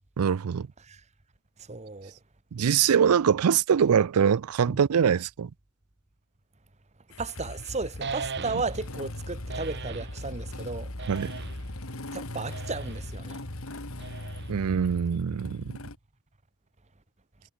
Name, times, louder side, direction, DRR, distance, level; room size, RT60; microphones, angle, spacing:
voice 1, 0.2-0.7 2.5-5.5 11.1-11.3 14.5-15.8, right 7 dB, 85° right, 0.4 m, -23 dB
voice 2, 1.7-2.1 4.7-4.8 7.2-10.9 12.1-13.4, right 3 dB, 30° right, 1.3 m, -34 dB
Motorcycle / Engine starting, 7.1-16.0, left 1 dB, 70° left, 3.0 m, -39 dB
sound 1, 8.0-8.9 9.5-10.2 11.0-11.7 12.5-13.1 14.0-14.7, right 5 dB, 50° right, 1.1 m, -39 dB
head